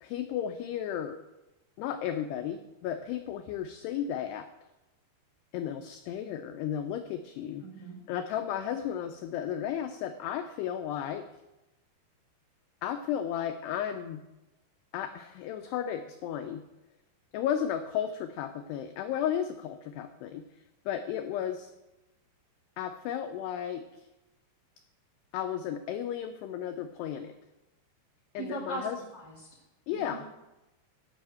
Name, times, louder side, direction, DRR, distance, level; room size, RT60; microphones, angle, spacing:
voice 1, 0.0-1.2 1.8-4.5 5.5-7.7 8.1-11.3 12.8-14.2 14.9-16.6 17.3-20.4 20.9-21.7 22.8-24.1 25.3-27.3 28.3-29.0 29.9-30.3, left 9 dB, 90° left, 7 dB, 2.3 m, -34 dB
voice 2, 7.6-8.0 28.4-28.9 29.1-29.5 29.9-30.3, right 2 dB, 45° right, -1 dB, 1.5 m, -39 dB
13.5 x 5.6 x 7.6 m, 1.0 s
omnidirectional pair, 5.5 m